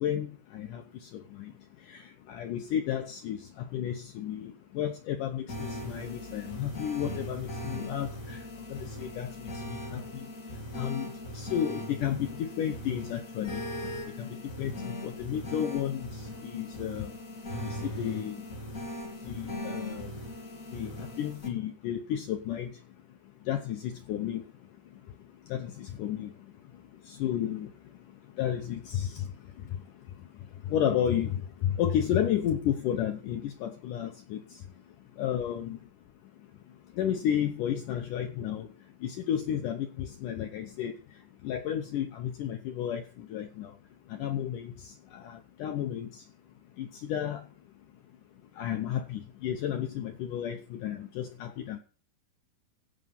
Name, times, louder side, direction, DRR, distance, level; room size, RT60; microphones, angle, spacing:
voice 1, 0.0-0.8 1.1-1.5 1.9-8.4 8.7-10.3 10.8-11.1 11.3-13.6 14.2-17.1 17.6-18.4 19.2-20.1 20.7-22.7 23.5-24.4 25.5-26.3 27.1-27.7 28.4-29.3 30.7-34.4 35.2-35.8 37.0-38.7 39.0-40.9 41.4-43.7 44.1-46.2 46.8-47.4 48.6-51.8, left 10 dB, 85° left, 6 dB, 1.8 m, -32 dB
sound 1, 5.5-21.5, left 1 dB, 30° left, 1.8 m, -39 dB
16.0 x 6.5 x 5.3 m, 0.39 s
omnidirectional pair, 5.0 m